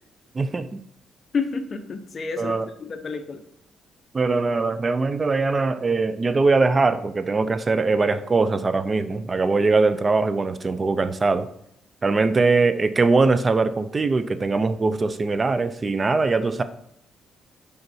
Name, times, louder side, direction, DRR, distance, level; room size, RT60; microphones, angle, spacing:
voice 1, 0.3-0.8 2.4-2.7 4.1-11.5 12.0-16.6, right 3 dB, 30° right, 12 dB, 0.6 m, -21 dB
voice 2, 1.3-3.4, left 5 dB, 40° left, 6 dB, 1.0 m, -30 dB
6.8 x 5.1 x 4.5 m, 0.74 s
cardioid pair, 90°, 0 cm